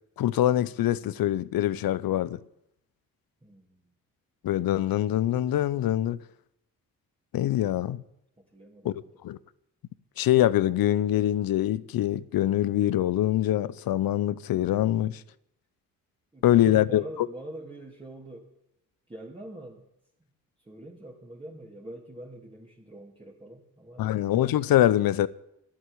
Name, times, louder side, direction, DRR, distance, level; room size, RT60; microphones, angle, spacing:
voice 1, 0.2-2.4 4.4-6.2 7.3-8.0 8.8-8.9 9.2-9.4 10.2-15.2 16.4-17.0 24.0-25.3, left 13 dB, 80° left, 0.8 m, -24 dB
voice 2, 3.4-3.9 7.9-8.0 8.4-9.1 16.3-18.5 19.1-19.9 20.6-24.1, right 1 dB, 15° right, 3.0 m, -44 dB
11.5 x 10.0 x 9.8 m
supercardioid pair, 60°, 35 cm